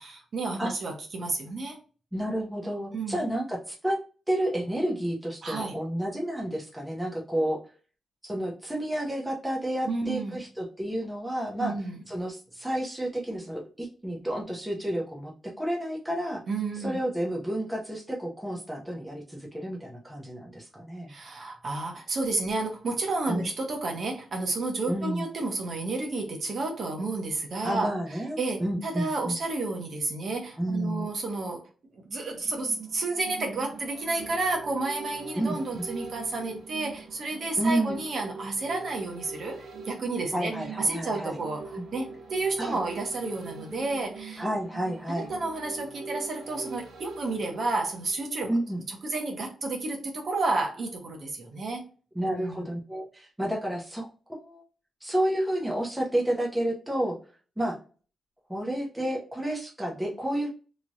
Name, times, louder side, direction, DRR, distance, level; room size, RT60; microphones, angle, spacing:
voice 1, 0.0-1.8 2.9-3.2 5.4-5.8 9.9-10.4 11.5-12.0 16.5-17.0 21.1-27.9 28.4-31.6 31.9-39.6 39.8-40.5 40.8-44.4 45.1-48.5 49.0-51.8 52.3-52.6, right 3 dB, 45° right, 1 dB, 0.9 m, -31 dB
voice 2, 2.1-4.0 4.3-7.6 8.2-11.7 12.1-15.3 15.6-16.4 16.8-21.1 23.3-23.5 24.9-25.2 27.6-29.4 30.6-31.1 35.3-35.9 37.6-38.0 40.3-41.4 41.8-41.9 42.6-42.8 44.4-45.3 48.5-48.8 52.1-54.6 55.0-57.2 57.6-57.8 58.5-60.5, right 1 dB, 5° right, -2 dB, 0.7 m, -30 dB
sound 1, 32.3-48.6 48.9-49.0, right 4 dB, 75° right, 1.1 m, -43 dB
3.1 x 2.9 x 2.6 m, 0.37 s
wide cardioid pair, 165°, 0 cm